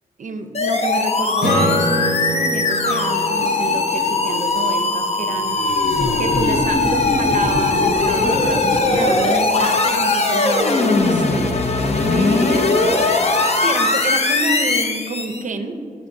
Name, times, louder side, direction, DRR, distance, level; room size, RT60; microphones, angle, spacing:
voice 1, 0.2-11.6 12.0-13.1 13.5-15.8, right 3 dB, 55° right, 7 dB, 0.5 m, -28 dB
sound 1, 0.5-15.4, left 3 dB, 45° left, 0.6 m, -19 dB
Strum, 1.4-5.7, equal, 75° left, 1.0 m, -26 dB
8.3 x 8.3 x 2.6 m, 2.7 s
wide cardioid pair, 140°, 15 cm